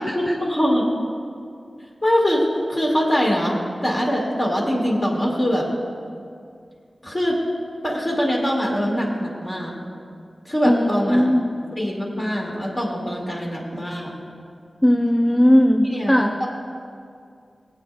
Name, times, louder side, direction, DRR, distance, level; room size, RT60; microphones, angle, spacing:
voice 1, 0.1-0.9 2.0-2.4 2.7-5.7 7.0-7.3 7.8-9.7 10.5-11.3 11.8-14.1 15.9-16.5, equal, 35° left, -2 dB, 2.2 m, -23 dB
voice 2, 10.7-11.5 14.8-16.4, equal, 15° left, 2 dB, 0.6 m, -18 dB
17.5 x 8.2 x 2.5 m, 2.3 s
cardioid pair, 50°, 0 cm